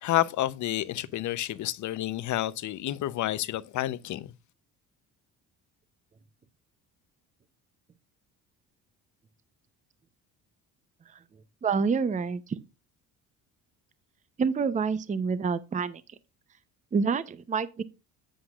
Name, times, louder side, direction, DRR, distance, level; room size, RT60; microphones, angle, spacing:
voice 1, 0.0-4.3, left 14 dB, 60° left, 0.7 m, -29 dB
voice 2, 11.6-12.6 14.4-16.0 16.9-17.8, right 5 dB, 20° right, 0.6 m, -27 dB
10.0 x 7.8 x 2.4 m
cardioid pair, 105°, 34 cm